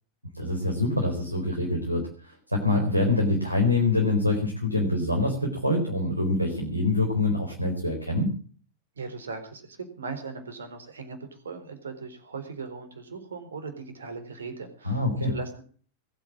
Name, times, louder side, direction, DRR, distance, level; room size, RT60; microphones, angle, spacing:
voice 1, 0.3-8.3 14.8-15.3, left 2 dB, 85° right, 2 dB, 4.2 m, -25 dB
voice 2, 9.0-15.6, right 4 dB, 70° right, 9 dB, 4.0 m, -39 dB
21.0 x 9.0 x 7.4 m, 0.42 s
figure-of-eight pair, 90°, 0 cm